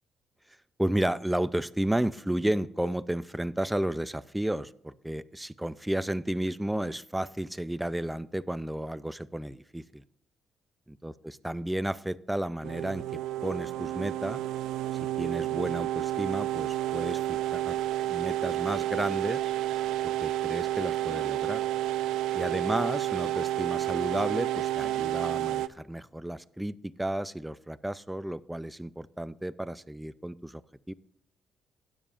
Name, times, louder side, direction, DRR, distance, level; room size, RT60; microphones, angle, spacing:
voice 1, 0.8-10.0 10.9-14.4 15.0-17.8 18.1-19.4 20.0-21.6 22.3-30.6 30.9-31.0, right 1 dB, 5° right, 14 dB, 0.4 m, -32 dB
sound 1, 12.6-25.7, right 14 dB, 90° right, 0.4 m, -30 dB
16.5 x 8.5 x 2.5 m, 0.73 s
cardioid pair, 90°, 0 cm